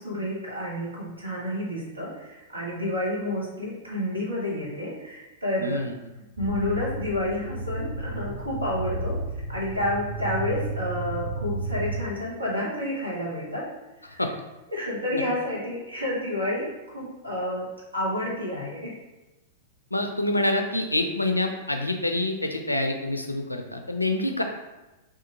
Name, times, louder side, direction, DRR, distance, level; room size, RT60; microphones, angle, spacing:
voice 1, 0.0-5.8 6.4-9.2 9.5-13.7 14.1-14.2 14.7-16.7 16.9-17.7 17.9-18.9, left 1 dB, 85° right, -4 dB, 1.0 m, -30 dB
voice 2, 5.6-5.9 14.2-14.3 15.1-15.2 19.9-24.4, left 1 dB, 90° left, 5 dB, 0.4 m, -26 dB
sound 1, 6.4-12.0, right 2 dB, 50° right, 0.9 m, -32 dB
2.8 x 2.5 x 3.8 m, 1.0 s
figure-of-eight pair, 100°, 0 cm